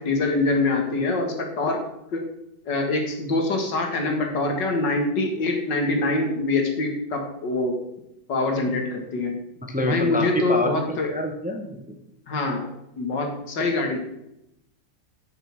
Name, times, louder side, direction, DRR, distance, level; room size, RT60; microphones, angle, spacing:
voice 1, 0.0-1.8 2.1-2.2 2.7-7.8 8.3-9.4 9.8-11.1 12.3-12.7 13.0-14.0, left 2 dB, 80° left, 3 dB, 2.4 m, -24 dB
voice 2, 9.6-11.9, left 1 dB, 5° right, 3 dB, 1.1 m, -27 dB
10.0 x 6.7 x 6.0 m, 0.83 s
omnidirectional pair, 1.9 m